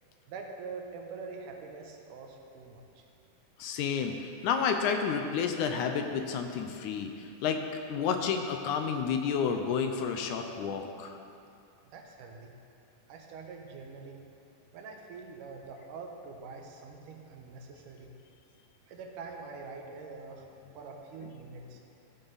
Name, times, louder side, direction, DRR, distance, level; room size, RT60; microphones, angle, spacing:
voice 1, 0.3-3.1 11.8-12.5 13.1-14.2 14.7-18.1 18.9-20.5 20.7-21.8, right 4 dB, 85° right, 2 dB, 2.5 m, -44 dB
voice 2, 3.6-7.6 7.9-11.2, left 6 dB, 75° left, 5 dB, 2.0 m, -30 dB
15.0 x 7.6 x 4.0 m, 2.5 s
omnidirectional pair, 3.7 m